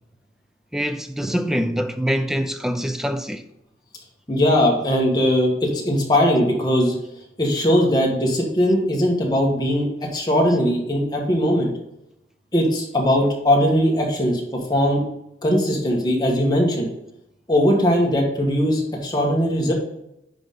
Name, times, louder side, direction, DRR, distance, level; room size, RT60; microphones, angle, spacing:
voice 1, 0.7-3.4 10.5-10.6, equal, 5° right, 0.4 m, -24 dB
voice 2, 4.3-6.9 7.4-11.7 12.5-15.0 15.4-16.9 17.5-19.7, equal, 25° left, 1.6 m, -20 dB
10.0 x 4.0 x 3.8 m
head